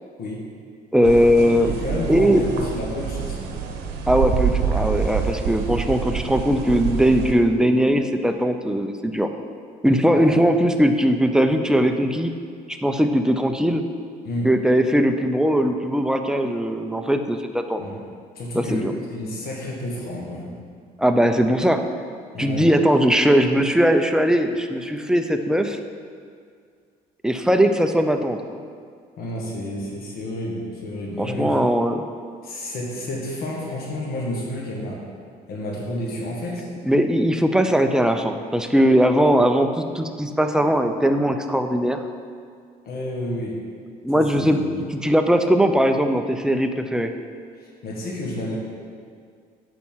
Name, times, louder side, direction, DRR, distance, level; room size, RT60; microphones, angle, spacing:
voice 1, 0.9-1.7 2.1-2.4 4.1-9.3 9.8-12.3 12.7-13.8 14.4-17.8 18.6-18.9 21.0-21.8 22.4-25.8 27.2-28.4 31.2-32.0 36.9-39.7 39.9-42.0 44.0-44.6 44.9-47.1, equal, 5° right, 6 dB, 0.5 m, -19 dB
sound 1, 1.0-7.3, right 7 dB, 80° right, 0.9 m, -27 dB
voice 2, 1.5-3.5 10.1-10.3 14.2-14.5 17.8-18.0 18.3-20.5 22.3-22.7 29.2-31.6 32.4-35.0 35.5-36.7 39.2-39.4 42.8-43.6 44.1-44.8 47.5-48.6, left 1 dB, 65° left, -3 dB, 1.7 m, -30 dB
9.1 x 4.3 x 5.6 m, 2.2 s
cardioid pair, 110°, 17 cm